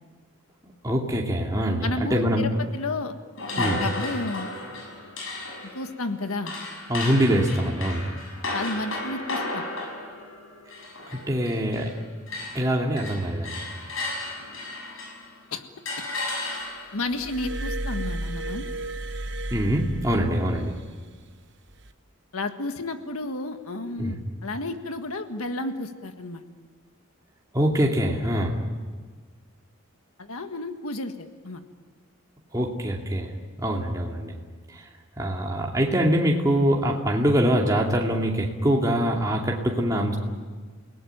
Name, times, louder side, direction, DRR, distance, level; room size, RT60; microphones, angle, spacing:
voice 1, 0.8-2.5 3.6-3.8 6.9-8.1 11.1-11.9 12.5-13.6 19.5-20.7 24.0-24.1 27.5-28.6 32.5-34.3 34.7-34.9 35.2-40.2, equal, 15° right, -1 dB, 2.6 m, -24 dB
voice 2, 1.8-3.2 3.5-4.5 5.7-6.5 8.5-9.6 15.5-15.6 16.0-16.1 16.9-18.6 22.3-26.4 30.2-31.6, left 2 dB, 85° left, 7 dB, 1.7 m, -32 dB
sound 1, 3.4-12.0 12.3-15.3 15.9-17.1, left 2 dB, 65° left, 6.9 m, -34 dB
Glass, 17.1-20.7 21.7-21.9, right 1 dB, 55° right, 1.2 m, -33 dB
29.5 x 18.5 x 9.3 m, 1.5 s
head